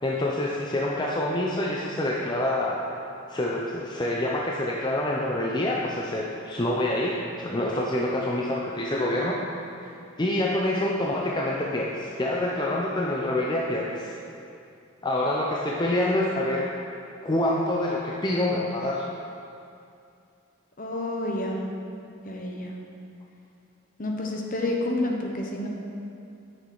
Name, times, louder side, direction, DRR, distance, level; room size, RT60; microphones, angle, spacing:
voice 1, 0.0-2.8 3.3-9.4 9.8-9.9 10.2-14.1 15.0-16.6 17.2-19.0, left 1 dB, 20° left, -3 dB, 0.6 m, -26 dB
voice 2, 20.8-21.6 22.2-22.7 24.0-25.7, left 1 dB, 45° left, 0 dB, 1.1 m, -29 dB
10.0 x 6.6 x 4.7 m, 2.5 s
head